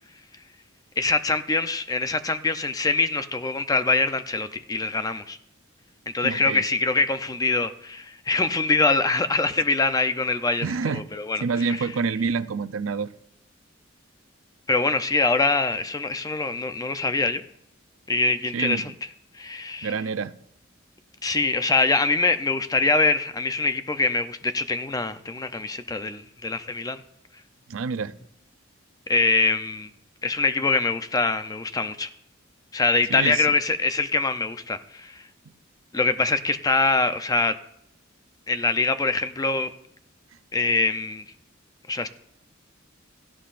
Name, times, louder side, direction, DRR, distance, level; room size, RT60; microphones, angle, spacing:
voice 1, 1.0-5.4 6.1-11.8 14.7-17.4 18.1-18.9 19.3-19.9 21.2-27.0 29.1-29.9 30.2-32.1 32.7-35.2 35.9-37.6 38.5-39.7 40.5-41.2 41.9-42.1, left 3 dB, 20° left, 0.6 m, -24 dB
voice 2, 6.2-6.6 10.6-11.1 11.4-13.1 18.5-18.9 19.8-20.3 27.7-28.1 33.1-33.5, right 5 dB, 85° right, 0.5 m, -27 dB
17.0 x 13.5 x 2.5 m
head